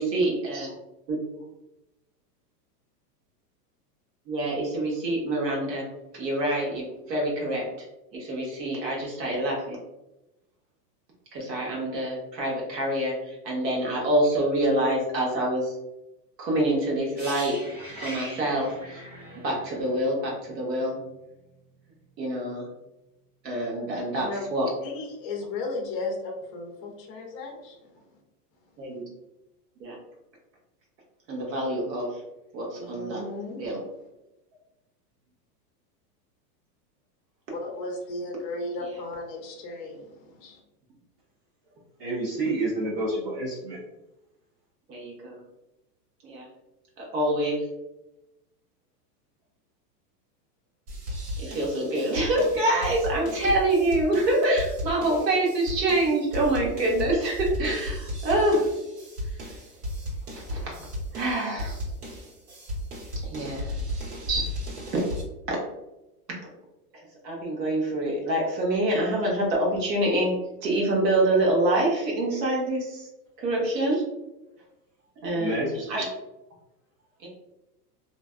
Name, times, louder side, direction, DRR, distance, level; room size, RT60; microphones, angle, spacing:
voice 1, 0.0-0.7 1.1-1.2 4.3-5.9 6.1-7.9 8.1-9.8 11.3-15.8 16.4-17.6 17.9-19.1 19.4-21.0 22.2-22.7 23.4-24.7 28.8-29.0 29.8-30.0 31.3-32.1 32.5-33.2 33.6-33.8 44.9-45.4 46.2-46.5 47.0-47.6 51.3-58.6 60.5-60.8 61.1-61.9 63.2-63.7 64.3-64.4 65.5-65.6 66.4-66.5 67.2-70.3 70.6-73.1 73.4-74.0 75.2-76.1 77.2-77.3, right 1 dB, 85° right, -2 dB, 1.1 m, -26 dB
sound 1, 17.1-21.0 21.3-21.5, equal, 15° right, 0.8 m, -41 dB
voice 2, 24.8-28.0 32.8-33.6 37.5-40.6, left 2 dB, 35° left, 0 dB, 0.5 m, -35 dB
voice 3, 42.0-43.8 75.4-76.0, right 2 dB, 40° right, -4 dB, 0.4 m, -29 dB
sound 2, 50.9-65.2, left 1 dB, 65° right, 1.3 m, -35 dB
2.5 x 2.2 x 2.3 m, 0.95 s
supercardioid pair, 155°, 48 cm